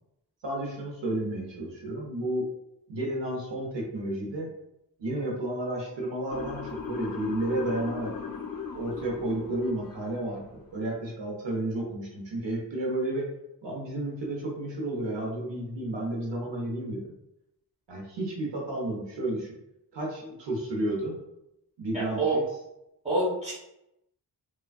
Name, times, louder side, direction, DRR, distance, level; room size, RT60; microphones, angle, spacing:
voice 1, 0.4-2.5 2.9-4.5 5.0-8.1 8.7-13.2 13.6-17.1 17.9-19.6 19.9-21.2 21.8-22.4, right 1 dB, 75° right, -2 dB, 0.8 m, -32 dB
Motor vehicle (road) / Siren, 6.3-10.4, left 6 dB, 50° left, 0.5 m, -39 dB
voice 2, 21.9-22.4 23.0-23.5, right 2 dB, 15° right, -7 dB, 1.4 m, -27 dB
3.3 x 2.3 x 2.3 m, 0.84 s
wide cardioid pair, 120°, 43 cm